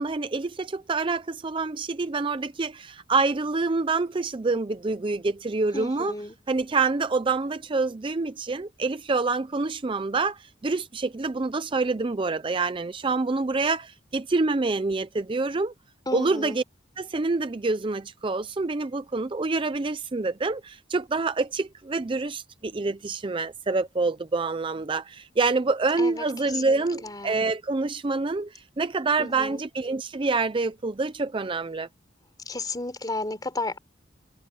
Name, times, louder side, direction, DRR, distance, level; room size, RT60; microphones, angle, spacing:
voice 1, 0.0-6.1 6.5-15.7 16.1-16.6 17.0-31.9, right 3 dB, 25° right, 0.5 m, -27 dB
voice 2, 5.7-6.4 16.1-16.6 26.0-27.4 29.2-29.6 32.5-33.8, left 2 dB, 20° left, 3.8 m, -33 dB
head